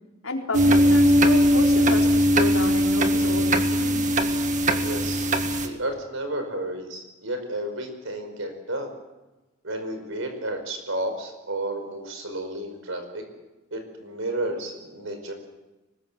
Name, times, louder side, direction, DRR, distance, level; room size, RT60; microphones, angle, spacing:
voice 1, 0.2-4.1, left 1 dB, 85° left, 0 dB, 4.2 m, -31 dB
sound 1, 0.5-5.7, equal, 40° right, 1.8 m, -20 dB
voice 2, 4.7-5.4 5.6-8.9 9.6-13.2 13.7-15.3, right 1 dB, 75° right, 6 dB, 5.2 m, -32 dB
24.0 x 20.5 x 7.5 m, 1.1 s
head